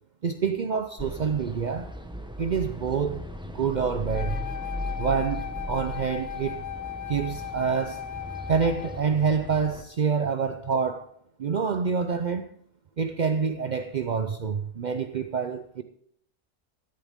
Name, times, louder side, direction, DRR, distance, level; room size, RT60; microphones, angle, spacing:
voice 1, 0.2-1.9 2.4-4.4 5.0-6.6 7.1-8.0 8.5-11.1 11.4-12.5 13.0-15.8, right 6 dB, 70° right, 0.4 m, -27 dB
sound 1, 1.0-9.8, left 1 dB, 5° right, 0.7 m, -37 dB
Wind instrument woodwind instrument, 4.1-9.0, left 10 dB, 85° left, 0.4 m, -37 dB
16.5 x 11.0 x 3.6 m
omnidirectional pair, 1.6 m